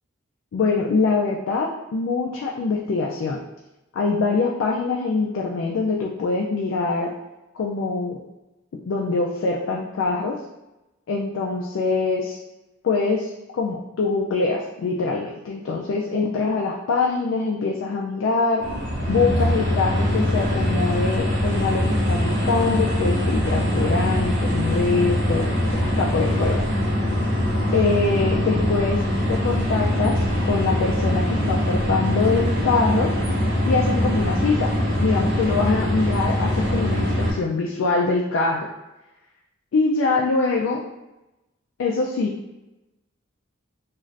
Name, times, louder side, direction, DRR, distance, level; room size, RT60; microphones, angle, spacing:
voice 1, 0.5-3.4 3.9-7.1 7.5-8.2 8.9-10.4 11.1-12.4 12.8-18.6 19.1-26.6 27.7-29.0 29.3-33.1 33.7-34.7 35.0-38.7 39.7-40.8 41.8-42.3, left 4 dB, 70° left, -1 dB, 0.3 m, -24 dB
sound 1, 18.6-37.3, left 1 dB, 55° right, 0.7 m, -22 dB
2.5 x 2.4 x 3.2 m, 0.99 s
head